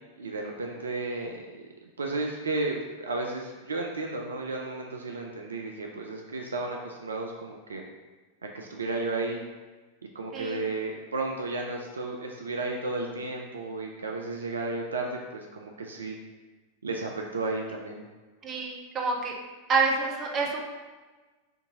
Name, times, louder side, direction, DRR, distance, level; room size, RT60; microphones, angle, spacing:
voice 1, 0.2-7.8 8.5-9.4 10.1-16.2 16.8-18.0, right 3 dB, 70° right, 1 dB, 0.3 m, -33 dB
voice 2, 10.3-10.6 18.4-19.3 19.7-20.6, right 4 dB, 30° right, 0 dB, 0.6 m, -27 dB
4.5 x 2.6 x 2.7 m, 1.3 s
figure-of-eight pair, 90°, 0 cm